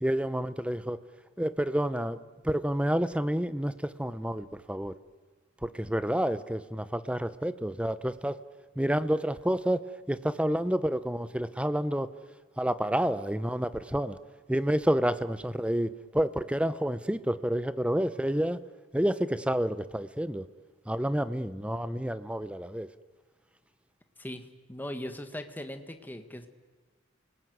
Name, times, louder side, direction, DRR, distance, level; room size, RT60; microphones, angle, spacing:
voice 1, 0.0-1.0 1.4-4.9 5.6-8.4 8.8-9.8 10.1-12.1 12.6-14.2 14.5-18.6 18.9-20.4 20.9-22.9, right 1 dB, 5° right, 0.8 m, -29 dB
voice 2, 24.7-26.5, left 1 dB, 10° left, 1.6 m, -39 dB
29.5 x 20.0 x 9.5 m
head